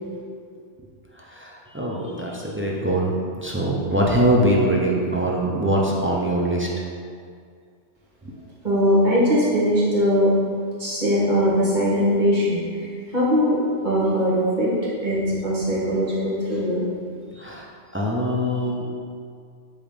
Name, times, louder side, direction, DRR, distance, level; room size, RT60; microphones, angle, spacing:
voice 1, 1.1-6.7 8.2-8.3 16.6-16.7 17.3-18.9, right 1 dB, 20° right, -3 dB, 0.3 m, -23 dB
voice 2, 8.6-10.3 10.8-12.9 13.1-13.6 13.8-14.7 15.0-16.8, equal, 40° right, -7 dB, 1.6 m, -20 dB
5.0 x 3.8 x 5.2 m, 2.2 s
omnidirectional pair, 1.2 m